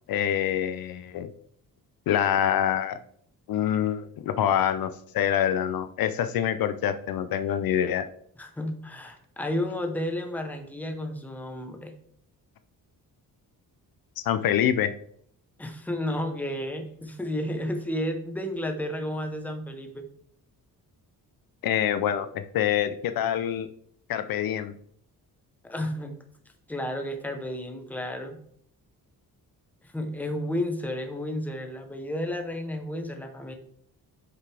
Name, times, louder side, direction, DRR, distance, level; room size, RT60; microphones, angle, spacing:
voice 1, 0.1-1.3 2.1-3.0 3.5-8.1 14.2-14.9 21.6-23.7 24.1-24.7, left 10 dB, 70° left, 11 dB, 0.6 m, -26 dB
voice 2, 8.4-11.9 15.6-20.1 25.7-26.2 26.7-28.4 29.9-33.5, left 1 dB, 5° left, 4 dB, 0.8 m, -32 dB
8.0 x 5.9 x 3.4 m, 0.64 s
wide cardioid pair, 175°, 36 cm